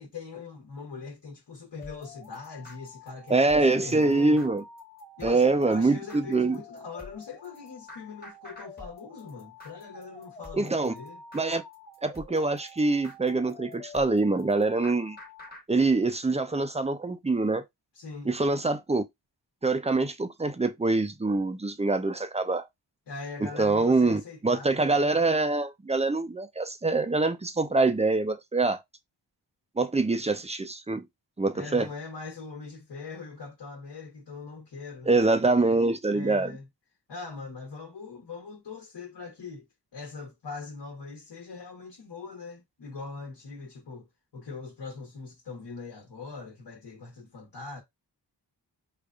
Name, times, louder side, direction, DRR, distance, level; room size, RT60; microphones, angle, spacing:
voice 1, 0.0-4.4 5.2-11.2 17.9-18.3 23.1-24.9 31.5-35.2 36.1-36.7 37.1-39.6 39.9-44.1 44.3-47.8, left 4 dB, 65° left, 1.1 m, -41 dB
sound 1, 1.8-15.6, left 3 dB, 20° left, 1.1 m, -47 dB
voice 2, 3.3-4.6 5.2-6.6 10.6-10.9 11.3-11.6 12.0-15.2 15.7-17.6 18.3-19.0 19.6-22.6 23.6-28.8 29.8-31.1 31.4-31.9 35.1-36.5, right 3 dB, 15° right, 0.4 m, -25 dB
4.9 x 2.5 x 2.3 m
wide cardioid pair, 85°, 44 cm